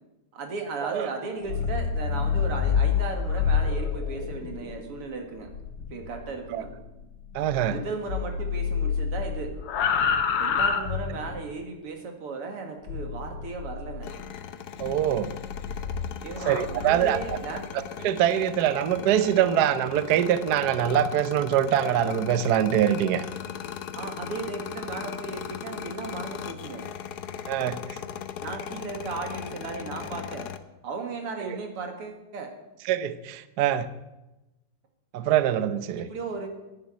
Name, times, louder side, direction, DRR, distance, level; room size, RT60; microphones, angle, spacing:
voice 1, 0.3-5.5 5.9-6.7 7.7-9.6 10.4-14.1 16.2-17.7 23.9-26.9 28.4-30.5 30.8-32.5 36.0-36.5, right 4 dB, 90° right, 4 dB, 3.0 m, -35 dB
sound 1, 1.3-7.8 8.1-11.5 12.9-14.1 14.8-17.4, left 6 dB, 85° left, 2.1 m, -29 dB
voice 2, 7.3-7.8 14.8-15.3 16.4-17.2 18.0-23.2 27.5-28.0 31.5-31.6 32.9-33.9 35.1-36.1, right 10 dB, 65° right, 12 dB, 1.0 m, -24 dB
sound 2, 14.0-30.6, left 9 dB, 60° left, 1.1 m, -38 dB
11.0 x 9.6 x 9.2 m, 1.0 s
omnidirectional pair, 2.4 m